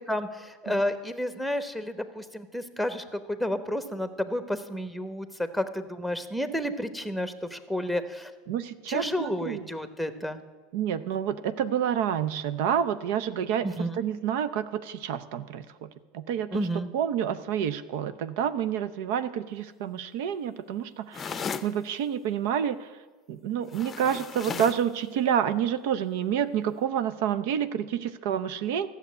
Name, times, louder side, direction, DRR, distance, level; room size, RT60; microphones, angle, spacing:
voice 1, 0.1-8.3 8.9-10.4 13.6-14.0 16.5-16.9, equal, ahead, 10 dB, 1.0 m, -31 dB
voice 2, 8.5-9.6 10.7-15.9 16.1-16.7 16.9-22.9 23.3-28.9, right 9 dB, 70° right, 12 dB, 0.6 m, -29 dB
sound 1, 21.1-21.7 23.7-24.9, left 6 dB, 25° left, 0.6 m, -35 dB
13.0 x 6.9 x 9.4 m, 1.3 s
supercardioid pair, 115°, 0 cm